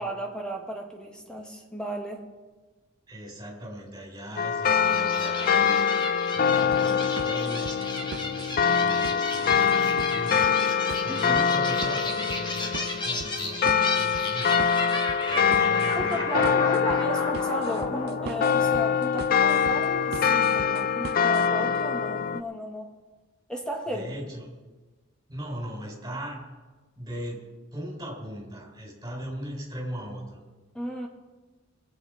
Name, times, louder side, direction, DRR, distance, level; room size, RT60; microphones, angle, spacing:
voice 1, 0.0-2.3 11.1-11.5 15.9-22.9 23.5-24.1 30.7-31.1, right 1 dB, 5° left, 1 dB, 1.7 m, -34 dB
voice 2, 3.1-5.9 6.3-16.6 23.9-24.5 25.3-26.4 27.0-27.4 27.7-30.4, equal, 20° right, -1 dB, 4.0 m, -39 dB
sound 1, 4.4-22.4, left 6 dB, 45° left, 0.4 m, -24 dB
sound 2, 4.8-19.5, left 2 dB, 25° left, 1.5 m, -34 dB
sound 3, 6.7-21.5, right 6 dB, 50° right, 0.3 m, -41 dB
20.0 x 8.4 x 5.0 m, 1.3 s
head